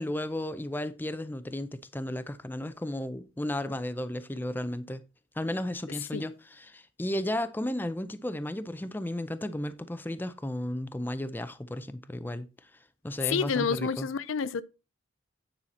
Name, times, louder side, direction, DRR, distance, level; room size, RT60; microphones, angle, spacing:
voice 1, 0.0-5.0 5.4-12.7 13.0-14.1, left 1 dB, 10° left, 0.5 m, -34 dB
voice 2, 13.3-14.6, left 5 dB, 80° left, 0.5 m, -29 dB
9.7 x 5.6 x 4.2 m
head